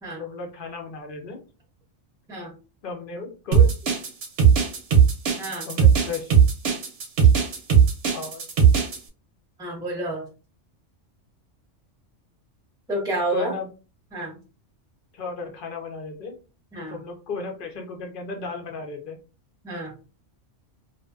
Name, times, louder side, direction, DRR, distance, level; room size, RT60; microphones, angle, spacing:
voice 1, 0.2-1.4 2.8-3.7 5.6-6.3 8.1-8.4 13.3-13.7 15.1-16.4 16.9-19.2, left 4 dB, 55° left, 3 dB, 0.7 m, -34 dB
sound 1, 3.5-9.0, right 7 dB, 65° right, 0.8 m, -17 dB
voice 2, 9.6-10.2 12.9-13.5 14.1-14.4 16.7-17.0 19.6-19.9, right 2 dB, 5° right, -1 dB, 0.6 m, -29 dB
2.5 x 2.2 x 2.3 m, 0.34 s
omnidirectional pair, 1.3 m